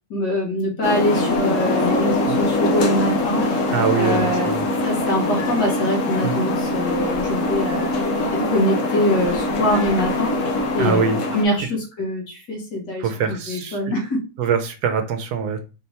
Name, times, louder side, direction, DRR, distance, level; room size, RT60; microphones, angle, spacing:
voice 1, 0.1-3.5 4.0-4.5 4.8-8.0 8.3-10.3 10.7-14.2, left 1 dB, 75° left, -1 dB, 2.1 m, -23 dB
sound 1, 0.8-11.4, left 2 dB, 55° left, 1.0 m, -22 dB
voice 2, 3.7-4.7 6.2-6.4 10.7-11.2 11.6-11.7 13.0-13.8 14.4-15.6, right 6 dB, 75° right, 7 dB, 1.1 m, -23 dB
4.3 x 2.8 x 3.3 m, 0.31 s
omnidirectional pair, 1.9 m